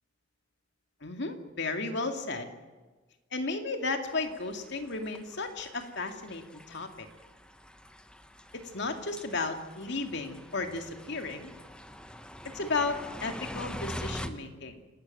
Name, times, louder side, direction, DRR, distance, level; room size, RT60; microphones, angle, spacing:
voice 1, 1.0-2.5 3.3-7.1 8.5-11.5 12.4-14.8, left 3 dB, 65° left, 5 dB, 2.4 m, -34 dB
sound 1, 4.1-14.3, equal, 5° left, 1.1 m, -44 dB
28.5 x 13.0 x 9.2 m, 1.3 s
head